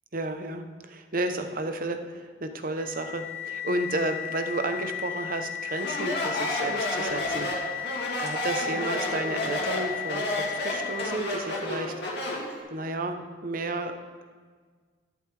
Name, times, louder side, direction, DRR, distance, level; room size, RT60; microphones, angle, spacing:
voice 1, 0.1-7.5 8.2-11.9 12.7-13.9, right 2 dB, 50° right, 7 dB, 0.8 m, -32 dB
sound 1, 2.8-11.3, left 10 dB, 35° left, 1.9 m, -35 dB
Speech, 5.8-12.5, left 1 dB, 65° left, 2.3 m, -30 dB
12.0 x 11.5 x 3.4 m, 1.5 s
head